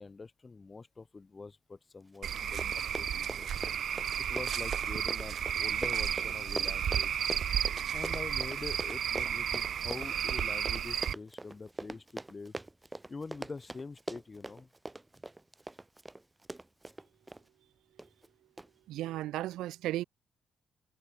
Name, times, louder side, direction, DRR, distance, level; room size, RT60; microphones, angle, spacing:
voice 1, 0.0-3.5 4.2-7.1 7.9-12.6 13.1-14.7, left 4 dB, 30° left, 5.6 m, -45 dB
Run, 2.1-2.2 2.4-17.4 18.0-18.3 18.6-18.7, right 2 dB, 15° right, 3.4 m, -42 dB
Cricket / Frog, 2.2-11.1, right 8 dB, 60° right, 0.9 m, -33 dB
voice 2, 18.9-20.0, right 14 dB, 85° right, 3.8 m, -35 dB
cardioid pair, 90°, 0 cm